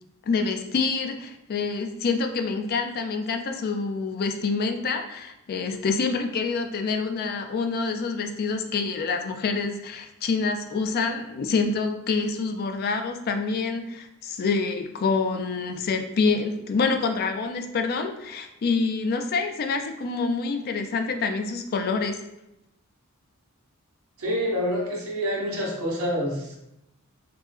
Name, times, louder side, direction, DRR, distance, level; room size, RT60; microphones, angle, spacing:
voice 1, 0.2-22.2, left 4 dB, 45° left, 6 dB, 0.3 m, -27 dB
voice 2, 24.2-26.6, equal, 80° right, -3 dB, 0.9 m, -27 dB
3.3 x 2.1 x 3.2 m, 0.86 s
head